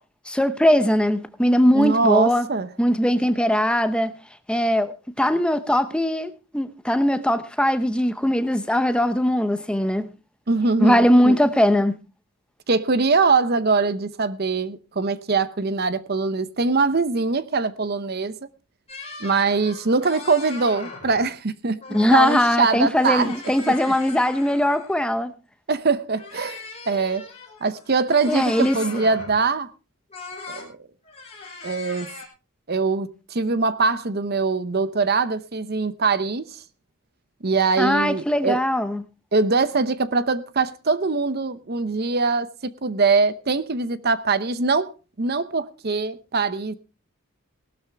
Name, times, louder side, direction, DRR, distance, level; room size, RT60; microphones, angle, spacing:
voice 1, 0.3-2.5 2.8-4.1 4.5-10.1 10.8-12.0 21.9-25.3 28.3-28.8 37.8-39.0, equal, 5° left, 0.8 m, -20 dB
voice 2, 1.7-2.7 10.5-11.4 12.7-18.3 19.2-21.8 22.1-23.3 23.7-23.8 25.7-27.3 27.6-29.7 30.5-30.8 31.6-32.1 32.7-36.6 37.4-38.6 39.3-44.9 45.2-46.7, right 4 dB, 45° right, 0.7 m, -22 dB
sound 1, 18.9-21.3 21.8-22.5 22.8-25.1 26.1-29.4 30.1-30.7 31.0-32.3, left 4 dB, 30° left, 5.1 m, -40 dB
18.0 x 12.5 x 3.4 m
head